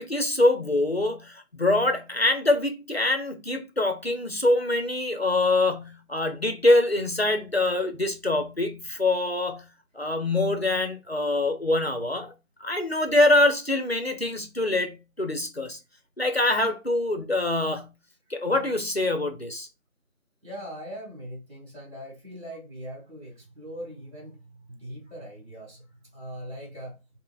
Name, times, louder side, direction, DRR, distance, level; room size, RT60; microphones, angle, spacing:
voice 1, 0.0-9.7 9.9-12.3 12.6-15.8 16.2-17.9 18.3-19.7, left 2 dB, 50° left, 0.4 m, -24 dB
voice 2, 20.4-27.0, equal, 50° right, 1.8 m, -41 dB
3.9 x 2.0 x 2.4 m
figure-of-eight pair, 175°, 42 cm